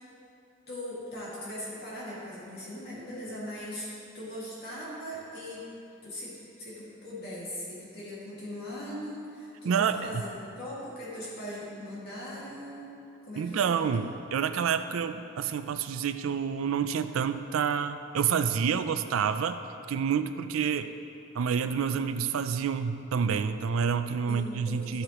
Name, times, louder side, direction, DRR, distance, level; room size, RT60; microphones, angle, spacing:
voice 1, 0.7-3.9 4.1-5.7 6.0-10.3 10.6-12.9 13.2-13.7 24.3-25.0, equal, 50° left, -7 dB, 2.1 m, -40 dB
voice 2, 9.6-10.2 13.4-19.6 19.9-20.9 21.3-25.0, right 7 dB, 80° right, 10 dB, 0.4 m, -28 dB
13.0 x 7.8 x 3.0 m, 2.6 s
head